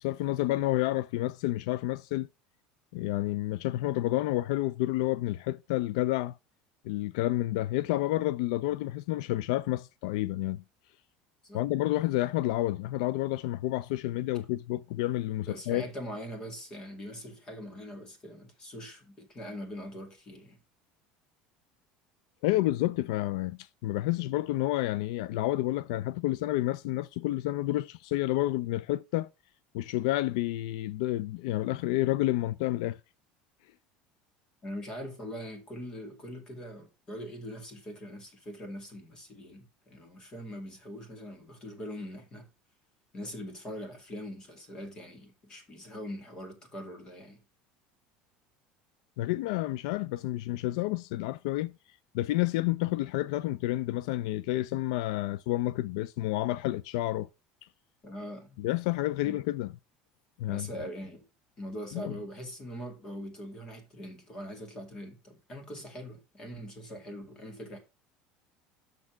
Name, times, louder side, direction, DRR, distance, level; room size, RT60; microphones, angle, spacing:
voice 1, 0.0-2.3 2.9-6.4 6.8-10.6 11.5-15.9 22.4-29.3 29.7-33.0 49.2-51.7 52.1-57.3 58.6-59.7 60.4-60.7 61.9-62.1, left 16 dB, 85° left, 0.3 m, -30 dB
voice 2, 15.5-20.6 34.6-42.5 43.1-47.4 58.0-58.6 59.2-59.4 60.5-61.2 61.6-67.8, equal, 25° left, 2.1 m, -42 dB
6.6 x 6.0 x 4.5 m
cardioid pair, 170°, 3 cm